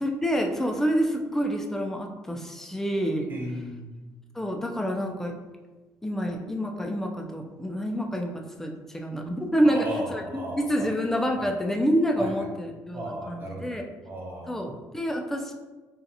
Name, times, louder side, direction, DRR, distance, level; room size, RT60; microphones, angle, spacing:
voice 1, 0.0-3.3 4.3-5.4 6.0-10.2 10.6-13.8 14.5-14.7 14.9-15.5, equal, 5° left, 2 dB, 0.4 m, -27 dB
voice 2, 3.3-4.0 9.6-10.9 11.4-11.5 12.2-12.3 12.9-13.7 14.0-14.7, right 1 dB, 35° right, -1 dB, 0.9 m, -35 dB
4.0 x 2.4 x 2.6 m, 1.2 s
cardioid pair, 110°, 6 cm